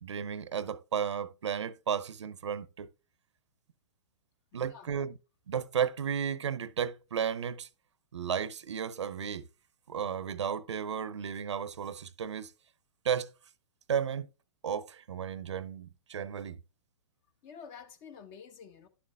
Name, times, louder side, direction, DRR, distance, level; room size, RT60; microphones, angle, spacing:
voice 1, 0.0-2.9 4.5-5.1 5.5-7.7 8.1-9.4 9.9-12.5 13.0-13.3 13.9-14.3 14.6-16.6, right 8 dB, 80° right, 0.7 m, -33 dB
voice 2, 4.5-4.9 17.4-18.9, left 6 dB, 45° left, 1.7 m, -49 dB
11.0 x 6.9 x 2.3 m
hypercardioid pair, 120°, 15 cm